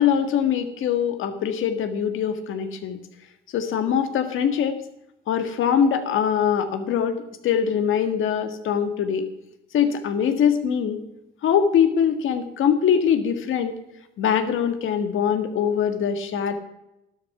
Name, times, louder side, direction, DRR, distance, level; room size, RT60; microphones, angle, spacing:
voice 1, 0.0-3.0 3.5-4.8 5.3-9.3 9.7-11.0 11.4-13.8 14.2-16.5, left 8 dB, 80° left, 8 dB, 1.8 m, -22 dB
12.5 x 11.5 x 5.9 m, 0.87 s
cardioid pair, 95°, 20 cm